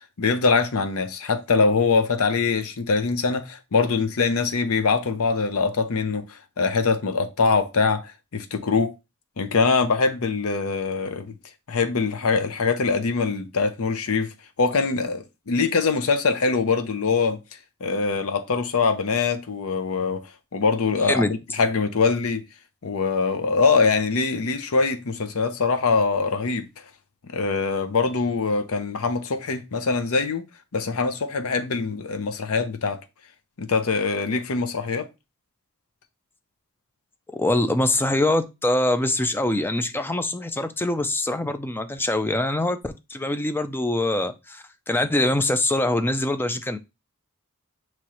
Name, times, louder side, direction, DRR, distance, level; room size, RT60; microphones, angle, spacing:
voice 1, 0.2-8.9 9.4-11.3 11.7-14.3 14.6-17.4 17.8-20.2 20.5-21.2 21.5-22.4 22.8-26.7 27.3-30.4 30.7-33.0 33.6-35.1, left 4 dB, 70° left, 0.6 m, -23 dB
voice 2, 37.3-46.8, left 1 dB, 10° left, 0.4 m, -24 dB
6.1 x 3.0 x 2.9 m
head